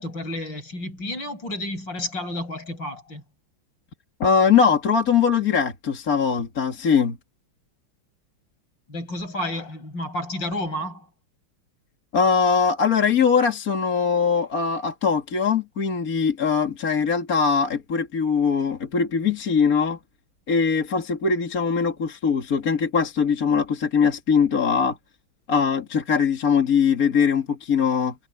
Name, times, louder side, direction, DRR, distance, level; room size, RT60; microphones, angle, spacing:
voice 1, 0.0-3.2 8.9-11.1, left 1 dB, 60° left, 6.9 m, -31 dB
voice 2, 4.2-7.2 12.1-20.0 20.5-25.0 25.5-28.1, left 6 dB, 45° left, 2.4 m, -21 dB
omnidirectional pair, 2.2 m